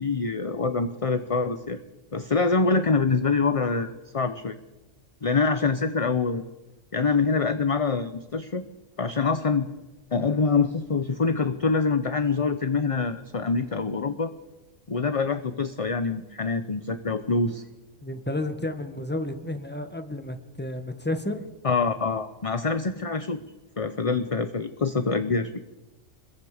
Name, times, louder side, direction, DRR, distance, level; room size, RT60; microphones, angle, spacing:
voice 1, 0.0-1.8 2.1-4.6 5.2-6.4 6.9-8.6 9.0-9.7 10.1-14.3 14.9-17.6 21.6-23.4 23.8-25.5, left 4 dB, 30° left, 10 dB, 0.8 m, -25 dB
voice 2, 18.0-21.5, left 1 dB, 10° left, 7 dB, 1.5 m, -31 dB
28.5 x 22.0 x 5.1 m, 1.0 s
omnidirectional pair, 1.3 m